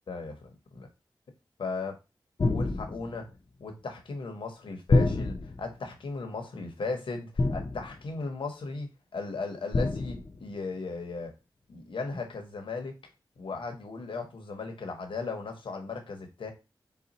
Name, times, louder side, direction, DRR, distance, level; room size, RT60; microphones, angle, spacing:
voice 1, 0.1-0.9 1.6-1.9 2.5-3.3 3.6-11.3 11.7-13.0 13.4-16.5, left 3 dB, 85° left, 1.0 m, -36 dB
sound 1, 2.4-3.2 4.9-5.7 7.4-8.1 9.7-10.4, left 2 dB, 45° left, 0.6 m, -27 dB
4.2 x 2.2 x 4.0 m
wide cardioid pair, 80°, 9 cm